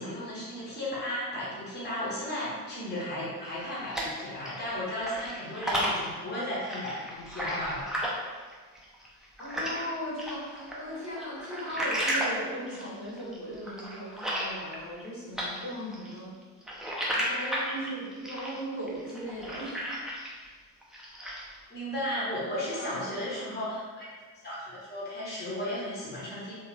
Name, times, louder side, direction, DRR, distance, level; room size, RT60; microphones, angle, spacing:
voice 1, 0.0-8.1 21.7-24.1 24.4-26.5, left 1 dB, 20° left, -8 dB, 1.3 m, -35 dB
sound 1, 3.5-4.7 5.0-9.9 10.2-15.1 15.4-20.5 20.8-21.6, equal, ahead, 0.6 m, -33 dB
voice 2, 9.4-16.3 17.2-19.8 22.4-23.6, equal, 35° left, -7 dB, 1.4 m, -38 dB
3.4 x 2.6 x 3.0 m, 1.5 s
figure-of-eight pair, 45°, 46 cm